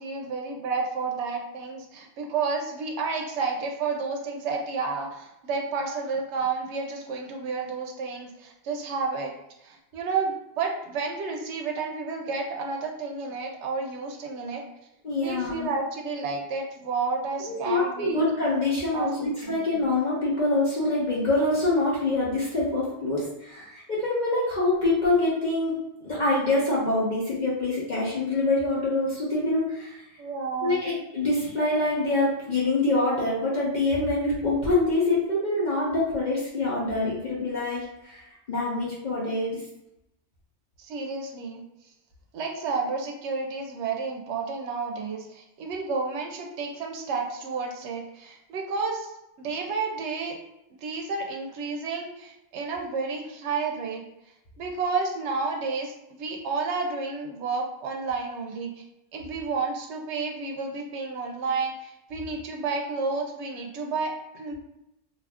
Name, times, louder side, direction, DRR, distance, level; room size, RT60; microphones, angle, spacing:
voice 1, 0.0-9.3 9.6-14.6 15.2-18.2 18.9-19.6 30.2-30.9 40.8-41.6 42.3-49.1 49.4-50.4 50.7-54.0 54.6-58.7 59.1-64.5, right 4 dB, 85° right, 1 dB, 0.9 m, -31 dB
voice 2, 15.0-15.7 17.4-30.0 30.6-39.6, left 2 dB, 45° left, -7 dB, 0.8 m, -25 dB
2.6 x 2.4 x 3.4 m, 0.86 s
omnidirectional pair, 1.1 m